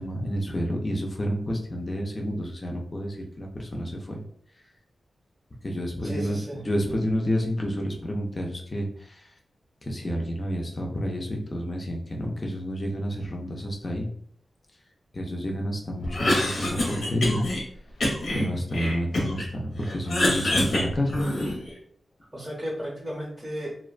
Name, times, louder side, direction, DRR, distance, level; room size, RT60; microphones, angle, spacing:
voice 1, 0.0-4.2 5.6-6.4 6.6-8.9 9.8-14.1 15.1-17.4 18.3-21.2, equal, 30° left, 0 dB, 0.4 m, -29 dB
voice 2, 6.0-6.6 22.3-23.8, equal, 20° right, -6 dB, 0.6 m, -34 dB
Cough, 16.0-17.6 18.0-19.5 19.8-21.7, left 1 dB, 70° left, 0.7 m, -26 dB
2.5 x 2.1 x 2.4 m, 0.62 s
wide cardioid pair, 130°, 0 cm